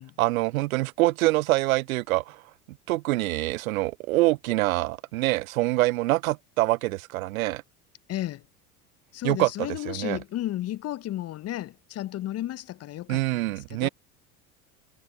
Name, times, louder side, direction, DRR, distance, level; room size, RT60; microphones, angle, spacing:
voice 1, 0.2-2.4 2.9-7.6 9.2-9.5 9.9-10.2 13.1-13.9, right 19 dB, 65° right, 0.8 m, -25 dB
voice 2, 8.1-8.4 9.1-13.9, left 13 dB, 35° left, 0.9 m, -33 dB
figure-of-eight pair, 75°, 44 cm